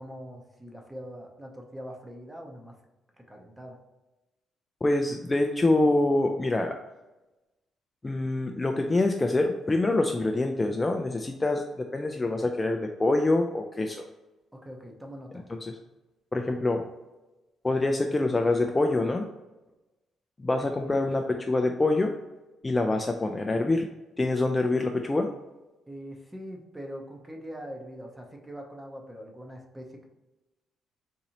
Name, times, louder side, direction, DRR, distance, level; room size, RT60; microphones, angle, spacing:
voice 1, 0.0-2.7 3.2-3.8 14.5-15.4 20.7-21.0 25.9-30.1, equal, 10° right, 2 dB, 0.8 m, -42 dB
voice 2, 4.8-6.8 8.0-14.0 15.5-15.7 16.3-16.8 17.6-19.2 20.4-22.1 22.6-23.9 24.2-25.3, left 2 dB, 20° left, 4 dB, 0.3 m, -25 dB
4.0 x 2.6 x 2.9 m, 1.1 s
cardioid pair, 90°, 0 cm